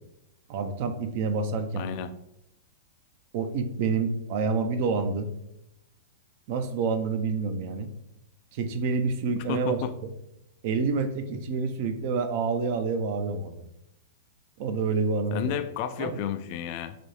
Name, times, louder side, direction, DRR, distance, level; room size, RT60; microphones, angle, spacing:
voice 1, 0.5-1.9 3.3-5.3 6.5-7.9 8.5-9.8 10.6-13.6 14.6-15.6 16.0-16.2, right 4 dB, 50° right, 8 dB, 0.5 m, -28 dB
voice 2, 1.8-2.1 9.4-9.9 15.3-17.0, left 8 dB, 45° left, 10 dB, 0.3 m, -32 dB
4.0 x 2.7 x 3.1 m, 0.83 s
hypercardioid pair, 105°, 0 cm